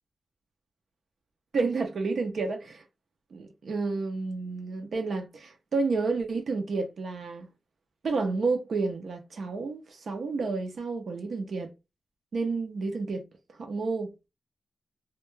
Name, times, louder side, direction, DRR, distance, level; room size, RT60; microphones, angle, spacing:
voice 1, 1.5-2.8 3.3-7.5 8.0-11.7 12.3-13.2 13.6-14.1, right 4 dB, 70° right, 0.4 m, -30 dB
2.2 x 2.1 x 3.0 m
wide cardioid pair, 90°, 0 cm